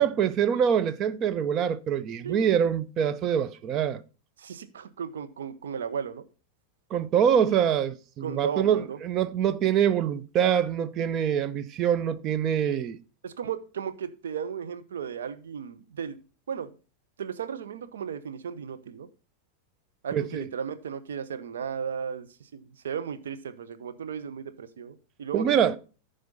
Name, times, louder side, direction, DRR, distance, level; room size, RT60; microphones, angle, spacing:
voice 1, 0.0-4.0 6.9-13.0 20.1-20.5 25.3-25.8, right 8 dB, 35° right, 0.7 m, -25 dB
voice 2, 4.4-6.2 8.2-9.0 13.2-16.2 16.5-16.7 17.2-19.1 20.0-25.8, right 7 dB, 65° right, 0.9 m, -35 dB
14.0 x 5.1 x 4.0 m
figure-of-eight pair, 90°, 0 cm